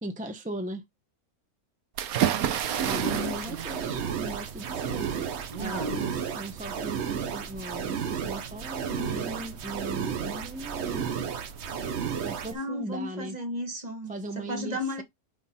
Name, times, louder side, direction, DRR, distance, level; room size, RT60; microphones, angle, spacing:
voice 1, 0.0-0.8 2.9-11.3 12.2-13.4 14.1-15.0, right 1 dB, 10° right, 0.4 m, -38 dB
sound 1, 2.0-6.8, right 10 dB, 75° right, 1.2 m, -32 dB
sound 2, 2.5-12.5, right 7 dB, 55° right, 1.0 m, -33 dB
voice 2, 3.0-3.6 5.5-6.1 12.4-15.0, equal, 30° right, 1.3 m, -35 dB
5.4 x 4.4 x 4.1 m
omnidirectional pair, 1.6 m